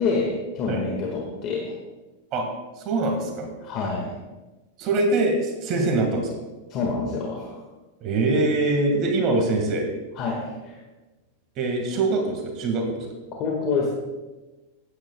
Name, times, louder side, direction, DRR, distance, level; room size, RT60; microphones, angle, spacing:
voice 1, 0.0-1.8 3.6-4.1 6.7-7.6 10.2-10.8 13.4-13.9, left 4 dB, 45° left, -1 dB, 1.7 m, -27 dB
voice 2, 2.8-3.5 4.8-6.4 8.0-9.9 11.6-13.1, right 2 dB, 45° right, 2 dB, 1.8 m, -23 dB
14.5 x 9.5 x 2.3 m, 1.2 s
hypercardioid pair, 115°, 0 cm